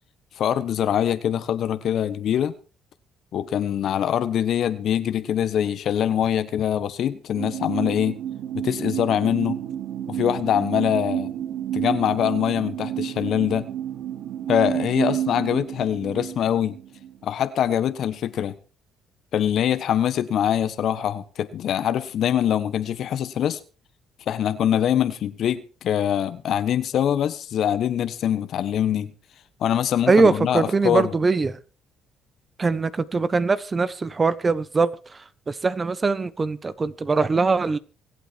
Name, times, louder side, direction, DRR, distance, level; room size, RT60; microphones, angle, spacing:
voice 1, 0.4-2.5 3.3-8.2 8.5-9.6 10.1-11.3 11.7-13.7 14.5-16.8 17.2-18.5 19.3-23.6 24.3-29.1 29.6-31.1, left 10 dB, 65° left, 1.3 m, -23 dB
sound 1, 7.3-17.2, right 10 dB, 75° right, 2.6 m, -30 dB
voice 2, 30.1-31.6 32.6-37.8, right 4 dB, 30° right, 1.2 m, -22 dB
25.0 x 8.3 x 4.6 m
supercardioid pair, 75°, 0 cm